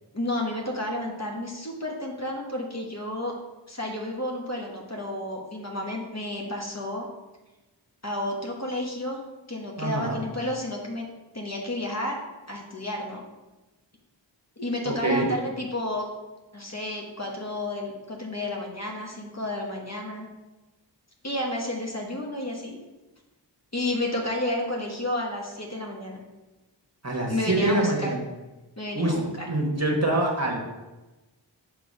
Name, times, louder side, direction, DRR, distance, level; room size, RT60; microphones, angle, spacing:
voice 1, 0.1-3.3 3.7-7.1 8.0-9.2 9.5-11.1 11.3-12.2 12.5-13.2 14.6-16.1 16.5-20.3 21.2-22.8 23.7-26.2 27.3-28.1 28.8-29.5, left 1 dB, 35° left, 0 dB, 1.1 m, -31 dB
voice 2, 9.8-10.2 14.8-15.3 27.0-28.2 28.9-30.6, right 1 dB, 35° right, -1 dB, 1.2 m, -25 dB
6.0 x 3.2 x 5.1 m, 1.1 s
wide cardioid pair, 40°, 45 cm